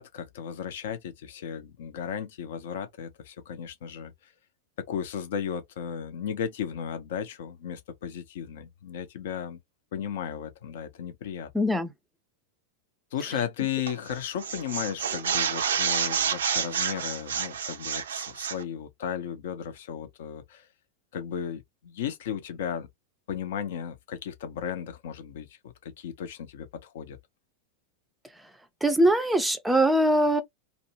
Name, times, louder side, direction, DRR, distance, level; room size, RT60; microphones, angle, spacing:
voice 1, 0.0-4.3 4.9-9.6 9.9-11.5 13.1-20.7 21.1-22.9 23.3-27.2, left 8 dB, 55° left, 0.6 m, -35 dB
voice 2, 11.5-11.9 28.8-30.4, right 1 dB, 5° right, 0.6 m, -22 dB
sound 1, 13.9-14.1 14.4-18.6, right 7 dB, 65° right, 0.4 m, -29 dB
2.6 x 2.0 x 2.8 m
figure-of-eight pair, 90°, 0 cm